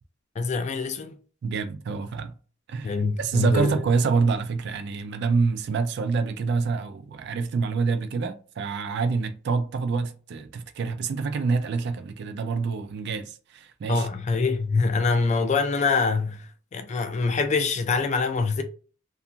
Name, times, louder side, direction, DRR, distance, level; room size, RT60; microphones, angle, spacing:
voice 1, 0.4-1.2 2.8-3.7 13.9-18.6, left 4 dB, 35° left, 0.3 m, -25 dB
voice 2, 1.4-2.3 2.7-14.1, right 4 dB, 55° right, 0.3 m, -26 dB
2.4 x 2.3 x 2.7 m
head